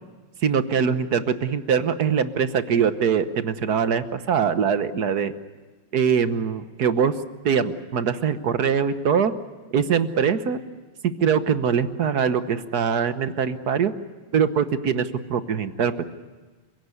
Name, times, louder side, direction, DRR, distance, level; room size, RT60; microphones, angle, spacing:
voice 1, 0.4-5.3 5.9-7.1 7.4-9.3 9.7-10.6 11.0-13.9 14.3-16.1, right 7 dB, 55° right, 11 dB, 1.4 m, -22 dB
29.0 x 17.0 x 9.6 m, 1.3 s
omnidirectional pair, 2.4 m